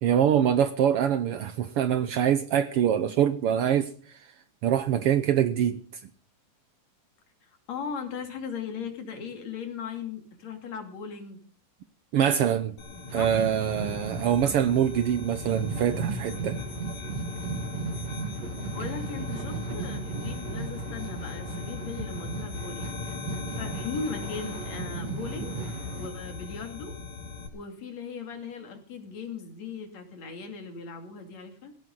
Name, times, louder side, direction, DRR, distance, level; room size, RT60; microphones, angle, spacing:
voice 1, 0.0-4.2 4.6-5.8 12.1-12.8 13.1-16.6, right 9 dB, 85° right, 1.2 m, -24 dB
voice 2, 7.4-11.4 13.2-13.4 18.7-22.9 23.3-25.6 25.9-27.0 27.5-31.7, left 5 dB, 55° left, 3.8 m, -38 dB
sound 1, 12.8-27.5, left 5 dB, 90° left, 3.9 m, -39 dB
sound 2, 12.8-26.1, right 5 dB, 55° right, 2.6 m, -36 dB
17.5 x 17.5 x 3.9 m
omnidirectional pair, 3.7 m